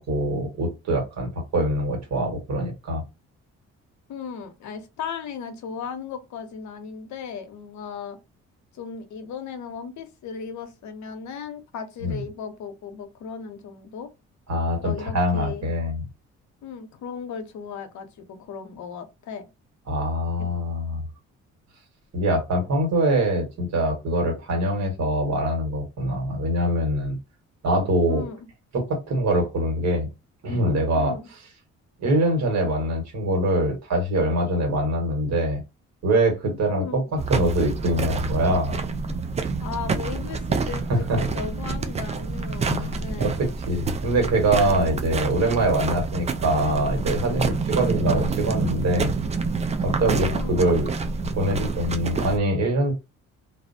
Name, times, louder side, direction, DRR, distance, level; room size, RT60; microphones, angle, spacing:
voice 1, 0.0-3.0 12.0-12.2 14.5-16.0 19.9-21.0 22.1-27.2 27.6-28.2 28.7-30.1 30.4-31.1 32.0-35.6 36.0-37.0 37.3-38.8 40.9-41.2 42.6-49.1 49.8-50.9 51.2-52.9, right 1 dB, 60° right, 1.3 m, -24 dB
voice 2, 4.1-8.2 8.7-14.1 14.8-15.7 16.6-19.5 28.1-28.5 30.9-31.3 36.6-37.0 39.6-43.3 50.3-50.6, left 6 dB, 70° left, 0.6 m, -36 dB
sound 1, 37.2-52.4, right 4 dB, 25° right, 0.3 m, -27 dB
2.4 x 2.0 x 2.6 m
cardioid pair, 90°, 30 cm